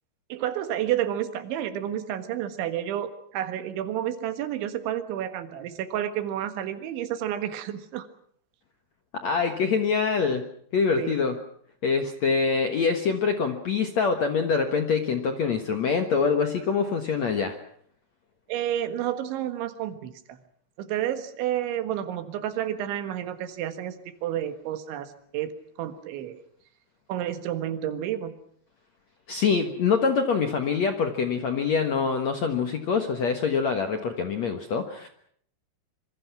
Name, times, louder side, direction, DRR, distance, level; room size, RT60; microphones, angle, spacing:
voice 1, 0.3-8.1 11.0-11.2 18.5-20.4 20.8-25.5 25.8-26.4 27.1-28.3, right 11 dB, 85° right, 9 dB, 4.0 m, -30 dB
voice 2, 9.1-10.5 10.7-11.4 11.8-17.6 29.3-35.1, left 5 dB, 60° left, 6 dB, 1.8 m, -25 dB
26.0 x 24.0 x 6.0 m, 0.63 s
omnidirectional pair, 5.2 m